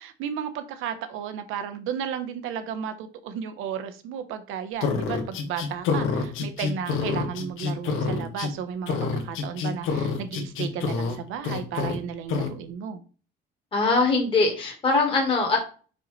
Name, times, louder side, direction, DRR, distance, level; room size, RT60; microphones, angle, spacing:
voice 1, 0.0-13.0, right 8 dB, 85° right, 1.0 m, -33 dB
sound 1, 4.8-8.5 8.9-11.2 11.4-12.0 12.3-12.5, left 5 dB, 75° left, 1.3 m, -27 dB
voice 2, 13.7-15.6, left 3 dB, 25° left, 1.6 m, -22 dB
5.5 x 5.4 x 3.2 m
cardioid pair, 175°, 20 cm